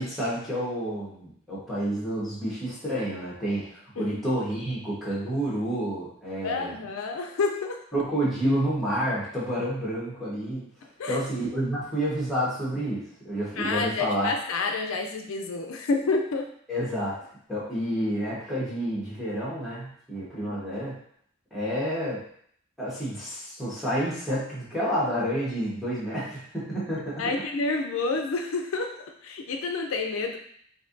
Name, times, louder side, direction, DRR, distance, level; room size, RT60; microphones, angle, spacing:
voice 1, 0.0-6.7 7.9-10.7 11.1-14.3 16.7-17.2 17.5-21.0 21.5-22.2 22.8-27.2, equal, ahead, -8 dB, 1.2 m, -29 dB
voice 2, 6.4-7.8 11.0-11.2 13.6-16.5 20.4-20.6 27.2-30.4, left 3 dB, 80° left, 4 dB, 0.4 m, -29 dB
4.4 x 2.7 x 2.6 m, 0.63 s
head